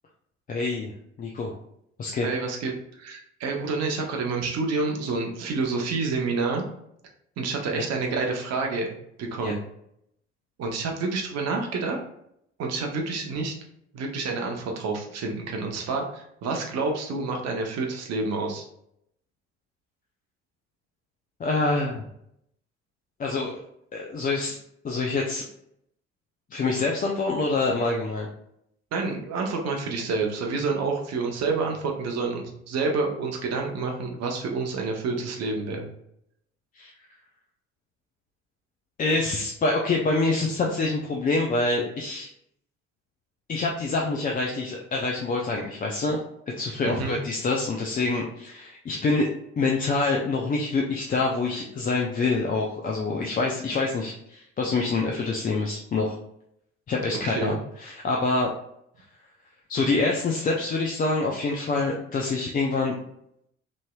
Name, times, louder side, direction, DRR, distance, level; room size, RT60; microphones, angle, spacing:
voice 1, 0.5-0.9 1.2-1.5 2.0-2.3 7.7-7.8 9.4-9.5 21.4-22.1 23.2-23.5 23.9-24.6 24.8-25.5 26.5-28.3 36.8-36.9 39.0-42.3 43.5-46.2 46.6-49.3 49.6-56.2 56.9-58.5 59.7-63.0, left 3 dB, 25° left, -1 dB, 0.5 m, -26 dB
voice 2, 2.2-6.7 7.4-9.6 10.6-12.0 12.6-13.5 13.9-18.6 28.9-35.9 46.8-47.2 57.2-57.6, right 4 dB, 50° right, 2 dB, 0.8 m, -28 dB
3.0 x 2.7 x 2.2 m, 0.74 s
figure-of-eight pair, 50°, 33 cm